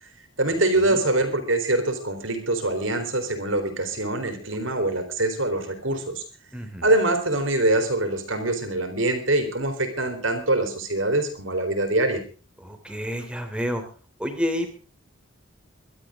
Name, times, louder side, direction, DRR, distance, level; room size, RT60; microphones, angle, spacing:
voice 1, 0.4-6.2 6.8-12.2, right 2 dB, 65° right, 8 dB, 3.8 m, -24 dB
voice 2, 6.5-6.9 12.6-13.8 14.2-14.8, equal, 5° right, 6 dB, 3.1 m, -29 dB
24.0 x 12.0 x 3.7 m, 0.35 s
head